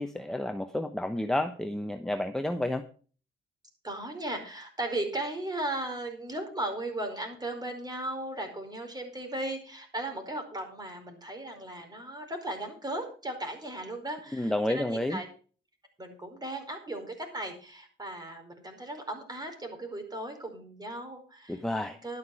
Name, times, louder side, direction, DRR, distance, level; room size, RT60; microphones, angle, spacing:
voice 1, 0.0-2.8 14.3-15.2 21.5-22.0, left 1 dB, 5° left, 7 dB, 1.0 m, -30 dB
voice 2, 3.8-15.3 16.0-22.2, right 1 dB, 20° right, 5 dB, 4.8 m, -36 dB
12.0 x 9.6 x 4.9 m, 0.40 s
cardioid pair, 90°, 20 cm